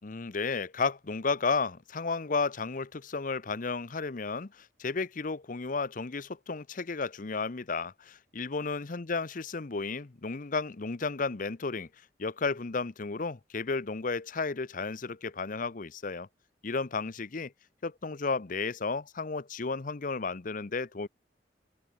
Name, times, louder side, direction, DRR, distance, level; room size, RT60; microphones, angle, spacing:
voice 1, 0.0-11.9 12.2-16.3 16.6-17.5 17.8-21.1, left 4 dB, 45° left, 0.8 m, -33 dB
head